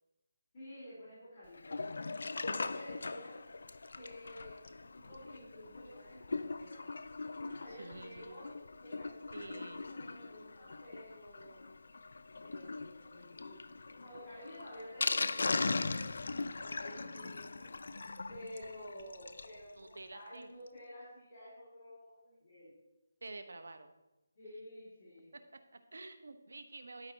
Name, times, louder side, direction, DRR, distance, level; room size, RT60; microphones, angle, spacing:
voice 1, 0.5-1.8 2.3-3.4 3.9-6.8 7.4-8.5 8.8-11.7 12.4-13.6 13.9-16.1 16.6-17.7 18.3-22.7 24.4-25.3, equal, 25° left, -12 dB, 3.6 m, -51 dB
Sink (filling or washing), 1.5-19.6 19.9-20.0 20.2-20.3 20.7-20.8, left 3 dB, 65° left, 0.4 m, -40 dB
voice 2, 7.7-8.4 9.3-9.8 19.7-20.5 23.2-23.9 25.3-27.1, right 2 dB, 80° right, 9 dB, 1.0 m, -49 dB
12.0 x 5.1 x 4.2 m, 1.0 s
hypercardioid pair, 170°, 0 cm